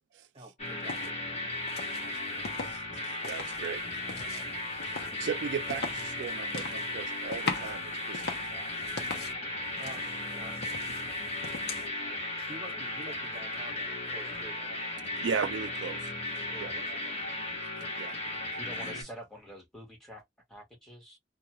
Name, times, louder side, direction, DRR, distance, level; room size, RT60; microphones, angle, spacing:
voice 1, 0.3-1.1 9.8-10.7 12.4-14.8 16.5-17.2, right 2 dB, 35° right, 1.3 m, -48 dB
sound 1, 0.6-19.0, left 2 dB, 40° left, 1.2 m, -36 dB
sound 2, 0.8-1.1 1.7-2.8 3.1-9.3 9.8-11.9, left 4 dB, 65° left, 0.8 m, -41 dB
voice 2, 2.6-3.9 4.8-8.8 15.2-16.1 16.6-16.8 18.0-18.2 18.8-19.0, right 6 dB, 80° right, 0.4 m, -37 dB
voice 3, 18.3-20.2 20.5-21.2, equal, ahead, 1.1 m, -47 dB
2.4 x 2.3 x 2.9 m
head